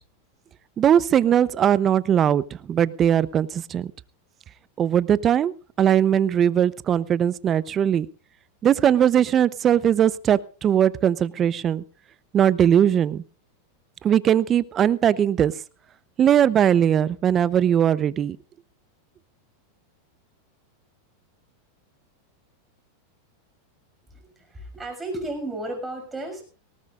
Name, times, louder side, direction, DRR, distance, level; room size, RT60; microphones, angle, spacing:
voice 1, 0.8-3.9 4.8-8.1 8.6-11.8 12.3-13.2 14.0-15.5 16.2-18.4, right 9 dB, 30° right, 18 dB, 0.7 m, -20 dB
voice 2, 24.1-26.4, right 1 dB, 10° right, 4 dB, 6.4 m, -33 dB
19.0 x 18.5 x 2.5 m, 0.34 s
supercardioid pair, 125°, 0 cm